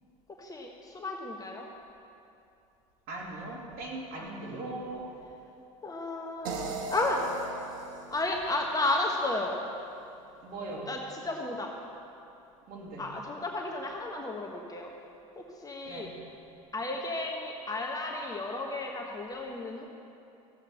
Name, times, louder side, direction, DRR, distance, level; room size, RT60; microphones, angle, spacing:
voice 1, 0.4-1.7 4.2-4.3 5.8-7.2 8.1-9.6 10.9-11.7 13.0-14.9 15.4-16.1 16.7-19.9, left 2 dB, 20° left, 0 dB, 1.3 m, -33 dB
voice 2, 3.1-5.0 10.4-10.9 12.7-13.0 15.8-16.1, right 2 dB, 60° right, -1 dB, 2.8 m, -39 dB
sound 1, 6.4-9.5, right 4 dB, 75° right, 1.3 m, -39 dB
14.0 x 8.2 x 5.7 m, 2.7 s
hypercardioid pair, 75°, 17 cm